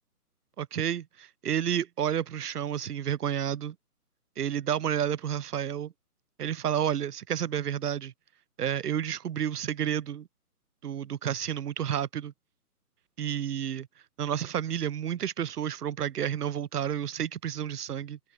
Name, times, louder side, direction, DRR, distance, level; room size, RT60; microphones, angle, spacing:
voice 1, 0.6-3.8 4.4-5.9 6.4-8.1 8.6-10.3 10.8-12.3 13.2-13.9 14.2-18.2, right 9 dB, 80° right, 0.7 m, -30 dB
hypercardioid pair, 175°, 46 cm